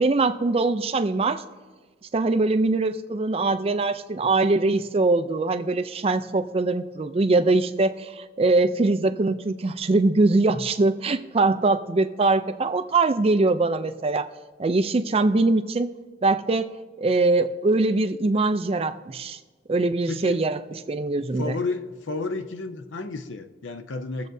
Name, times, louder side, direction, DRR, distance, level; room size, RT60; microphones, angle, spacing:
voice 1, 0.0-1.4 2.1-14.3 14.6-15.9 16.2-16.7 17.0-19.4 19.7-20.6 20.9-21.5, right 3 dB, 30° right, 10 dB, 0.4 m, -22 dB
voice 2, 20.1-20.5 21.4-24.3, left 3 dB, 80° left, 9 dB, 0.6 m, -31 dB
22.0 x 7.4 x 2.7 m, 1.3 s
head